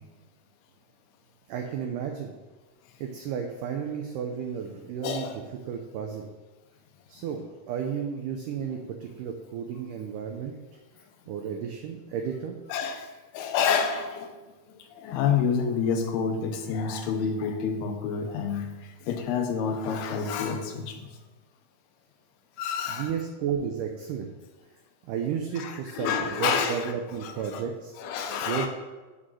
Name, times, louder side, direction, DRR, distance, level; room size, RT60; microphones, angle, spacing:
voice 1, 1.5-2.3 3.0-5.3 5.7-6.3 7.1-10.6 11.3-12.6 22.9-24.3 25.1-27.9 28.5-28.7, right 7 dB, 90° right, 3 dB, 1.8 m, -32 dB
voice 2, 5.0-5.4 12.7-13.1 13.3-14.4 15.0-18.8 19.1-21.1 22.6-23.1 25.6-26.9 27.2-27.6 28.0-28.7, left 6 dB, 85° left, 5 dB, 2.8 m, -28 dB
8.3 x 3.7 x 6.2 m, 1.2 s
omnidirectional pair, 4.4 m